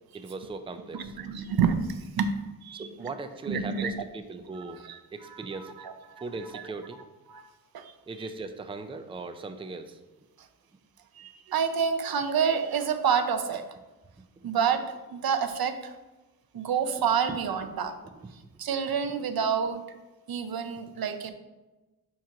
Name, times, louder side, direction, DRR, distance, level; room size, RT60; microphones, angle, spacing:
voice 1, 0.1-1.1 2.8-4.8 5.1-5.7 6.2-7.0 8.1-10.0 14.4-14.5 17.3-17.4, right 3 dB, 15° right, 8 dB, 0.4 m, -38 dB
voice 2, 0.9-2.3 2.6-2.9 3.5-4.0 4.6-6.3 6.5-6.6 7.3-7.4 7.7-7.9 11.2-13.7 14.4-15.9 16.5-18.0 18.6-19.8 20.3-21.3, right 7 dB, 90° right, 9 dB, 0.6 m, -28 dB
7.2 x 3.0 x 5.7 m, 1.1 s
wide cardioid pair, 165°, 35 cm